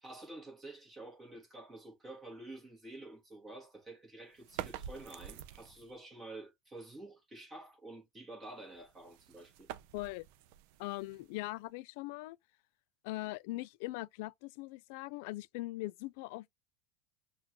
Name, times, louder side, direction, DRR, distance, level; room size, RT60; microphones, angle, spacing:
voice 1, 0.0-9.7, right 2 dB, 20° right, 1.3 m, -49 dB
sound 1, 4.4-6.0 8.7-11.7, right 11 dB, 65° right, 0.5 m, -47 dB
voice 2, 9.9-10.3 10.8-12.4 13.0-16.5, left 19 dB, 70° left, 0.3 m, -41 dB
5.8 x 2.4 x 2.9 m
supercardioid pair, 140°, 0 cm